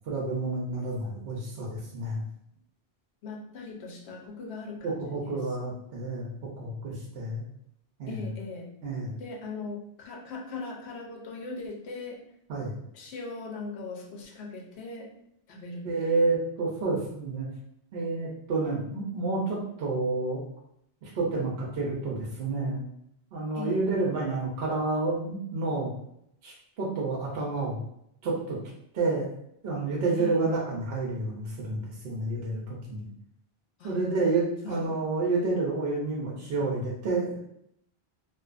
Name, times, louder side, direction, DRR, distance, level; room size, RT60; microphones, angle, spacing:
voice 1, 0.1-2.2 4.8-7.4 8.0-8.3 8.8-9.2 12.5-12.8 15.8-17.5 17.9-20.4 21.0-22.8 23.3-25.9 26.4-27.8 28.2-28.6 28.9-29.3 29.6-33.1 33.8-37.4, right 3 dB, 75° right, -3 dB, 0.8 m, -29 dB
voice 2, 3.2-5.3 8.1-8.7 9.2-12.2 12.9-15.1 15.5-16.3 23.5-23.8 30.2-30.4 33.8-34.0 34.6-35.0, left 3 dB, 90° left, -1 dB, 0.9 m, -39 dB
2.5 x 2.3 x 2.4 m, 0.74 s
omnidirectional pair, 1.1 m